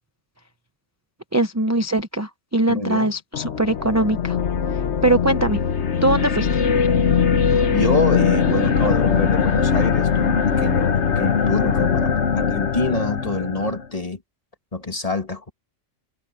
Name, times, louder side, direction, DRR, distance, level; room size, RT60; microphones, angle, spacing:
voice 1, 1.3-4.4 4.7-5.6 6.0-6.5, right 2 dB, 15° right, 0.7 m, -21 dB
voice 2, 2.8-3.1 7.7-14.2 14.7-15.5, left 2 dB, 25° left, 1.9 m, -26 dB
sound 1, 3.3-13.9, left 6 dB, 60° left, 1.3 m, -21 dB
omnidirectional pair, 1.4 m